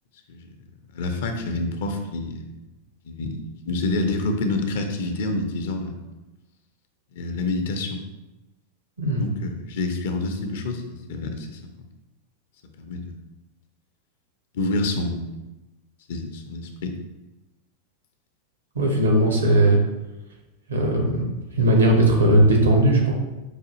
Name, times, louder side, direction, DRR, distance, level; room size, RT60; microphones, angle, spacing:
voice 1, 0.9-2.5 3.0-6.0 7.1-8.0 9.2-11.9 12.8-13.2 14.5-15.3 16.1-16.9, left 2 dB, 55° left, 5 dB, 0.4 m, -28 dB
voice 2, 18.7-19.8 20.7-21.2 21.6-23.1, right 1 dB, 75° right, 0 dB, 0.8 m, -18 dB
4.8 x 2.3 x 2.9 m, 1.1 s
figure-of-eight pair, 90°, 0 cm